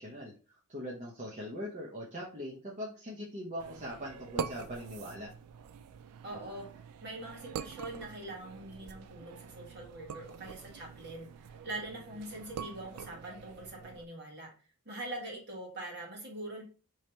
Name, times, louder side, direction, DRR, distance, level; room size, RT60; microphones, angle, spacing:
voice 1, 0.0-5.3, equal, 30° right, -4 dB, 0.7 m, -41 dB
sound 1, 3.6-14.1, right 7 dB, 90° right, 0.3 m, -45 dB
voice 2, 6.2-14.5 14.8-16.6, right 1 dB, 50° right, -2 dB, 1.6 m, -43 dB
3.2 x 2.8 x 4.3 m, 0.37 s
head